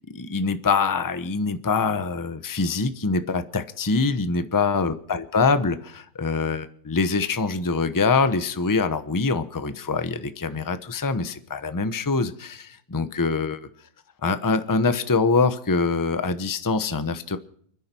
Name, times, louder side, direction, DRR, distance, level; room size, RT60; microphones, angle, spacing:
voice 1, 0.1-13.7 14.2-17.4, left 4 dB, 25° left, 11 dB, 0.4 m, -24 dB
29.5 x 10.5 x 4.4 m, 0.62 s
omnidirectional pair, 2.2 m